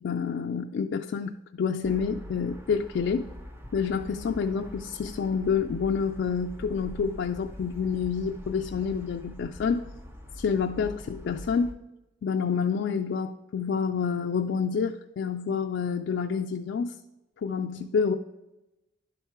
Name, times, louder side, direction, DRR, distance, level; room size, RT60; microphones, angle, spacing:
voice 1, 0.0-3.3 3.7-9.8 10.4-11.7 12.2-16.9 17.4-18.1, left 6 dB, 65° left, 2 dB, 0.3 m, -28 dB
sound 1, 1.8-11.7, left 1 dB, 10° right, 0.5 m, -44 dB
11.0 x 3.6 x 4.6 m, 1.0 s
head